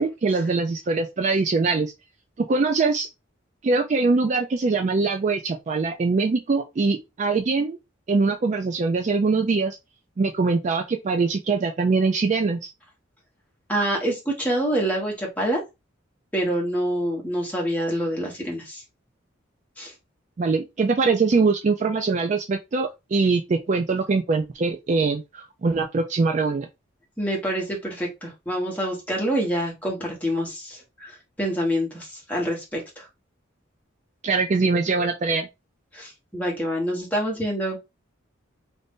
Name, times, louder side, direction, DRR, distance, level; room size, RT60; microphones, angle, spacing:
voice 1, 0.0-1.9 2.4-3.1 3.6-7.8 8.1-9.8 10.2-12.7 20.4-26.7 34.2-35.5, right 4 dB, 35° right, 0.3 m, -23 dB
voice 2, 13.7-15.6 16.3-18.8 19.8-19.9 27.2-33.0 35.9-37.8, equal, 5° left, 1.1 m, -26 dB
2.6 x 2.5 x 3.5 m
head